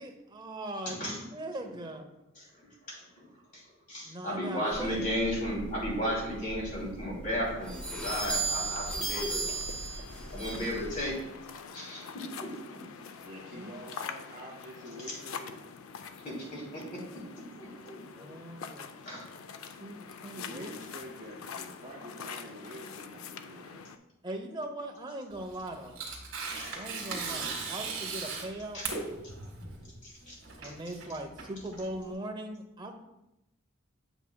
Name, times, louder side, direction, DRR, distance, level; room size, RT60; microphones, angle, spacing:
voice 1, 0.0-2.0 4.0-5.0 11.8-12.1 13.5-13.8 14.8-14.9 18.0-18.9 19.8-20.8 24.2-26.0 26.7-28.8 30.6-32.9, right 1 dB, 20° right, 4 dB, 0.7 m, -40 dB
voice 2, 0.9-1.2 1.6-1.7 2.5-3.3 3.5-9.4 10.3-11.2 11.7-12.5 15.1-15.2 16.2-17.2 17.6-18.3 19.0-19.2 26.5-26.7 27.0-27.1 28.7-28.9 30.0-30.4 30.6-30.7, equal, 35° left, -3 dB, 2.6 m, -35 dB
sound 1, 4.7-11.1, right 3 dB, 5° left, 0.8 m, -37 dB
sound 2, 7.8-24.0, left 6 dB, 65° left, 0.4 m, -45 dB
voice 3, 13.2-15.6 20.4-23.8, equal, 35° right, -4 dB, 1.8 m, -46 dB
Tearing, 25.3-32.1, right 4 dB, 60° right, 1.8 m, -38 dB
8.0 x 7.2 x 2.2 m, 0.90 s
head